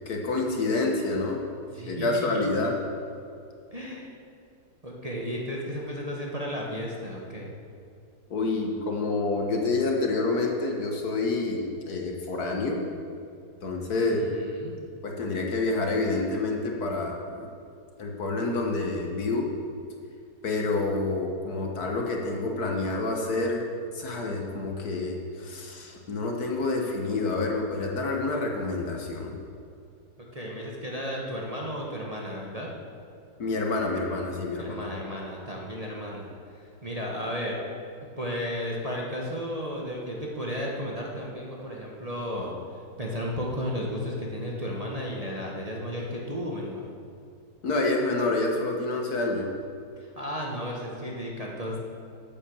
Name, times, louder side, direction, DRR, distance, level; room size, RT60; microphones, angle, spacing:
voice 1, 0.0-1.4 1.9-2.7 8.3-12.9 13.6-14.3 15.0-17.5 18.0-19.5 20.4-23.7 23.9-29.4 33.4-34.9 47.6-49.5, left 3 dB, 65° left, 1 dB, 1.8 m, -28 dB
voice 2, 1.7-2.5 3.7-4.1 4.8-7.5 14.1-14.7 30.2-32.7 34.6-37.6 38.2-46.8 50.0-51.8, equal, 25° right, -3 dB, 1.3 m, -34 dB
9.5 x 8.7 x 7.1 m, 2.5 s
omnidirectional pair, 1.8 m